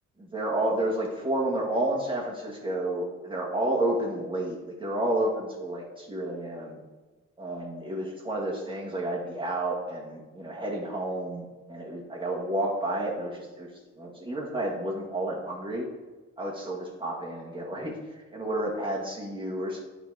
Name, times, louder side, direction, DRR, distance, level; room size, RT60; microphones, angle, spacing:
voice 1, 0.2-6.8 7.4-15.9 16.4-17.9 18.3-19.8, right 1 dB, 15° right, -3 dB, 1.6 m, -30 dB
8.8 x 4.1 x 4.8 m, 1.2 s
cardioid pair, 90°, 30 cm